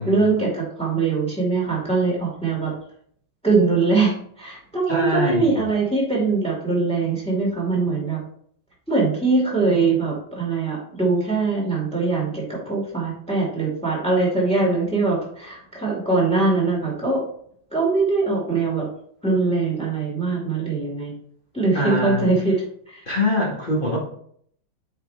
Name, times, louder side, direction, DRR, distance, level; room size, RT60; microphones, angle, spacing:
voice 1, 0.0-2.7 3.4-8.2 8.9-17.2 17.7-18.9 19.2-21.1 21.5-22.6 22.9-23.0, right 3 dB, 5° left, -3 dB, 2.1 m, -22 dB
voice 2, 4.9-5.7 21.7-22.3 23.1-24.0, left 1 dB, 25° left, -2 dB, 1.8 m, -24 dB
8.1 x 4.6 x 3.5 m, 0.62 s
omnidirectional pair, 2.3 m